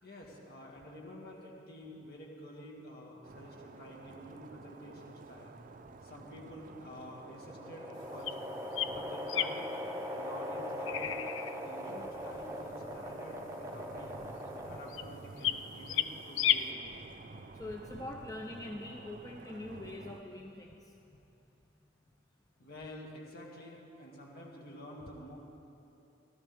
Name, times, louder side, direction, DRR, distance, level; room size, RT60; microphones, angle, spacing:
voice 1, 0.0-5.6 6.0-8.3 8.8-9.7 10.1-11.2 11.5-14.2 14.5-17.1 22.6-25.4, left 1 dB, 55° left, -3 dB, 2.3 m, -49 dB
sound 1, 3.2-20.2, right 3 dB, 45° right, 0.5 m, -51 dB
sound 2, 7.0-15.2, equal, 15° right, 0.7 m, -41 dB
sound 3, 8.3-8.4 8.8-8.9 9.3-9.8 10.8-11.6 14.9-15.0 15.4-15.6 15.9-16.1 16.4-16.7, left 11 dB, 85° left, 0.4 m, -31 dB
voice 2, 17.5-21.2, left 1 dB, 20° left, -1 dB, 0.6 m, -44 dB
16.0 x 13.5 x 3.5 m, 2.9 s
head